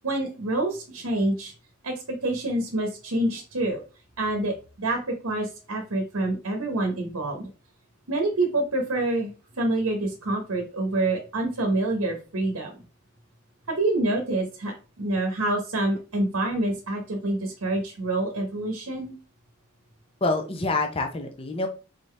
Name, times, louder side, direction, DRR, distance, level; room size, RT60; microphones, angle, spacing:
voice 1, 0.0-1.5 1.8-3.8 4.2-7.5 8.1-12.8 13.7-19.1, right 2 dB, 75° right, 2 dB, 1.0 m, -27 dB
voice 2, 20.2-21.7, left 2 dB, 25° left, 4 dB, 0.6 m, -26 dB
4.0 x 3.8 x 3.2 m, 0.34 s
head